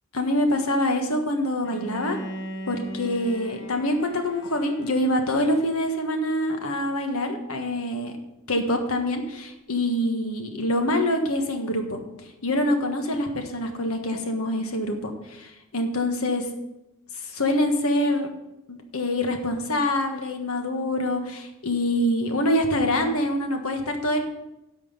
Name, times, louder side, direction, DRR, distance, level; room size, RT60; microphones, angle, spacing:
voice 1, 0.1-2.2 2.7-8.1 8.5-12.0 12.4-16.5 17.2-18.3 18.7-24.2, left 1 dB, 85° left, 5 dB, 1.4 m, -25 dB
Bowed string instrument, 1.6-6.6, equal, 60° left, 1.0 m, -40 dB
11.0 x 6.2 x 5.5 m, 0.94 s
head